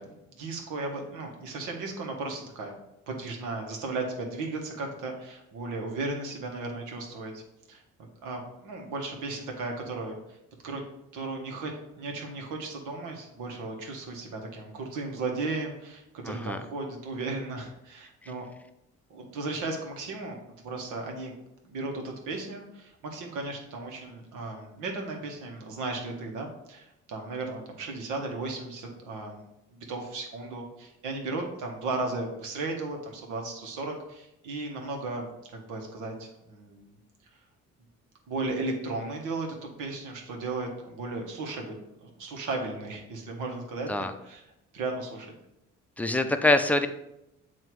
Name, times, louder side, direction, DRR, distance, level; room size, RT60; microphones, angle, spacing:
voice 1, 0.0-2.7 3.1-7.4 7.7-7.8 8.2-10.4 10.6-10.8 11.1-18.5 19.1-20.4 20.6-21.3 21.6-29.5 29.7-37.0 38.3-41.7 42.0-43.9 44.2-44.4 44.7-45.3, right 3 dB, 90° right, 2 dB, 1.3 m, -35 dB
voice 2, 16.3-16.6 43.9-44.1 46.0-46.9, left 2 dB, 5° left, 8 dB, 0.5 m, -24 dB
7.6 x 2.8 x 4.6 m, 0.87 s
cardioid pair, 90°, 30 cm